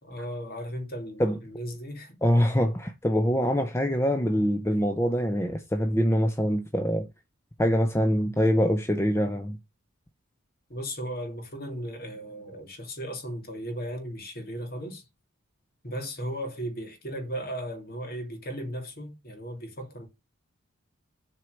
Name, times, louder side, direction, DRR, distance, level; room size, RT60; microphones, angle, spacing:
voice 1, 0.0-2.2 10.7-15.0 15.8-20.1, equal, 45° left, 2.5 m, -36 dB
voice 2, 2.2-7.1 7.6-9.6, equal, 10° left, 0.7 m, -24 dB
7.8 x 4.7 x 6.4 m
head